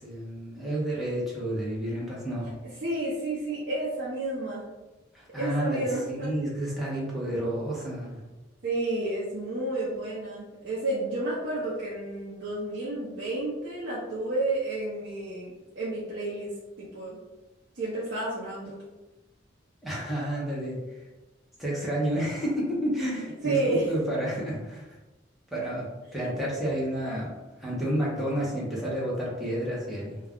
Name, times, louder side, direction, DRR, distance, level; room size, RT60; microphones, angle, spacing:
voice 1, 0.0-2.5 5.1-8.2 19.8-20.8 21.6-24.9 25.5-27.3 27.6-30.2, right 1 dB, ahead, -7 dB, 0.7 m, -30 dB
voice 2, 2.8-4.7 5.4-6.3 8.6-17.2 17.7-18.8 23.4-23.9 26.2-26.3, right 2 dB, 60° right, -7 dB, 0.6 m, -31 dB
2.3 x 2.2 x 3.5 m, 1.1 s
head